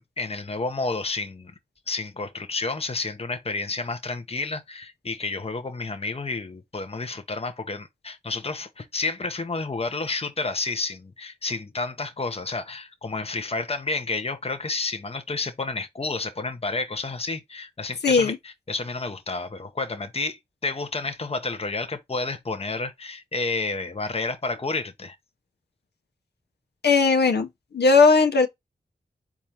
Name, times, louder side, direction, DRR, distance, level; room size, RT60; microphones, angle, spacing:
voice 1, 0.2-1.5 1.9-25.2, left 3 dB, 35° left, 0.9 m, -30 dB
voice 2, 18.0-18.4 26.8-27.5 27.7-28.5, left 4 dB, 80° left, 1.1 m, -17 dB
4.3 x 3.6 x 3.0 m
cardioid pair, 50°, 17 cm